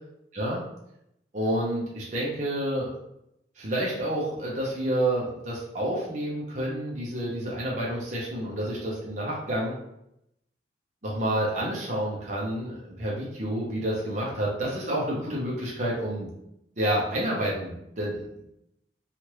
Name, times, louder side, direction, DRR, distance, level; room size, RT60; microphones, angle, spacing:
voice 1, 1.3-2.9 3.6-9.7 11.0-16.3 16.8-18.5, right 1 dB, 40° right, -5 dB, 0.6 m, -29 dB
3.1 x 2.4 x 2.9 m, 0.81 s
head